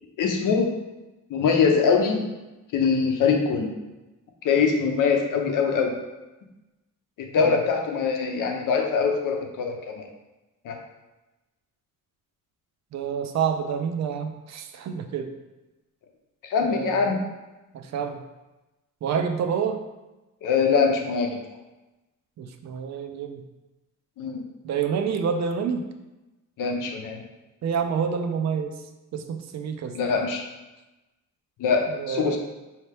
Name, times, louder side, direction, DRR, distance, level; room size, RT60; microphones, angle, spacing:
voice 1, 0.2-0.7 1.3-2.2 2.7-3.8 4.4-6.0 7.2-10.1 10.6-10.8 16.4-17.2 20.4-21.4 24.2-24.4 26.6-27.2 29.9-30.4 31.6-32.4, left 5 dB, 80° left, 2 dB, 0.7 m, -23 dB
voice 2, 12.9-15.3 16.6-17.1 17.7-18.2 19.0-19.8 22.4-23.4 24.6-25.8 27.6-28.8 29.1-30.0 31.9-32.4, right 6 dB, 60° right, 7 dB, 0.4 m, -28 dB
4.3 x 2.8 x 3.3 m, 1.1 s
cardioid pair, 130°, 32 cm